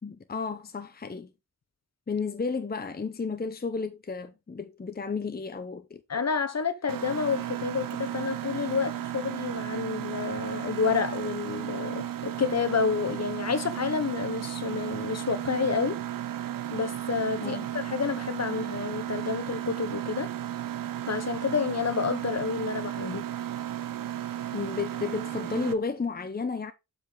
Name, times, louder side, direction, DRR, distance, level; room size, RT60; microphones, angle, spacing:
voice 1, 0.0-1.3 2.1-6.0 17.4-17.7 24.5-26.7, left 4 dB, 30° left, 0.8 m, -32 dB
voice 2, 6.1-16.0 16.7-20.3 21.1-23.2, left 5 dB, 50° left, 1.1 m, -29 dB
Mechanisms, 6.9-25.7, right 11 dB, 85° right, 0.7 m, -34 dB
7.3 x 5.3 x 3.8 m
cardioid pair, 70°, 32 cm